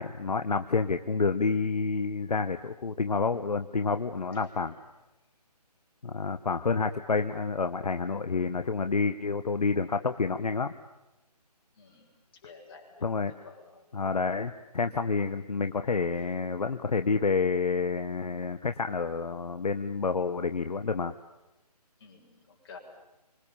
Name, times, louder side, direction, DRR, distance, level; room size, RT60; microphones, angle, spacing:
voice 1, 0.0-4.7 6.0-10.7 13.0-13.3 13.9-21.1, left 4 dB, 70° left, 9 dB, 1.4 m, -29 dB
voice 2, 4.3-4.6 11.8-12.1 12.4-13.0 13.4-13.8 22.0-22.8, left 4 dB, 35° left, 0 dB, 7.5 m, -51 dB
28.5 x 26.0 x 7.3 m, 0.99 s
figure-of-eight pair, 155°, 21 cm